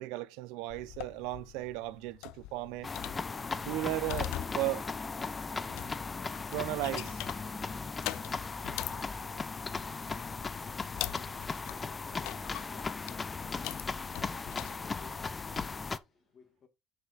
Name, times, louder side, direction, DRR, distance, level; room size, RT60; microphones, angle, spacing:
voice 1, 0.0-2.9 3.7-4.9 6.5-7.2, right 17 dB, 85° right, 0.5 m, -35 dB
sound 1, 0.7-15.7, left 16 dB, 80° left, 0.4 m, -44 dB
sound 2, 2.8-16.0, left 4 dB, 25° left, 0.5 m, -37 dB
sound 3, 3.7-10.3, right 3 dB, 55° right, 2.8 m, -61 dB
voice 2, 9.5-16.7, left 6 dB, 40° left, 1.6 m, -59 dB
6.5 x 4.9 x 3.9 m
cardioid pair, 115°, 0 cm